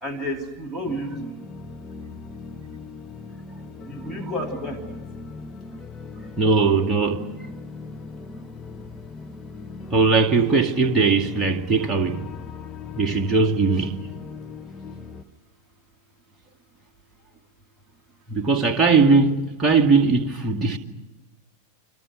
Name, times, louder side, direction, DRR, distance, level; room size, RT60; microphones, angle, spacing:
voice 1, 0.0-1.3 3.9-5.0, equal, ahead, 3.4 m, -31 dB
sound 1, 0.8-15.2, left 4 dB, 20° left, 1.4 m, -39 dB
voice 2, 6.4-7.2 9.9-12.2 12.9-13.9 18.3-20.8, right 4 dB, 20° right, 2.5 m, -19 dB
30.0 x 25.0 x 6.4 m
figure-of-eight pair, 90°, 0 cm